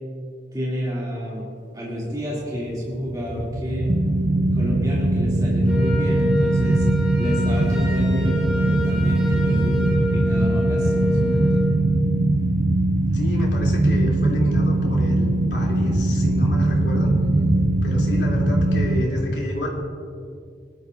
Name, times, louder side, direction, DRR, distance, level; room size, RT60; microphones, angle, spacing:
voice 1, 0.5-1.5 1.7-3.9 4.5-6.8 7.2-11.7, equal, 20° right, -6 dB, 2.7 m, -29 dB
sound 1, 2.7-19.0, right 1 dB, 45° right, 0.9 m, -21 dB
Wind instrument woodwind instrument, 5.7-11.8, left 1 dB, 5° right, 2.2 m, -28 dB
voice 2, 13.1-17.1 17.8-19.7, equal, 80° left, -3 dB, 3.0 m, -28 dB
20.0 x 12.0 x 2.6 m, 2.3 s
head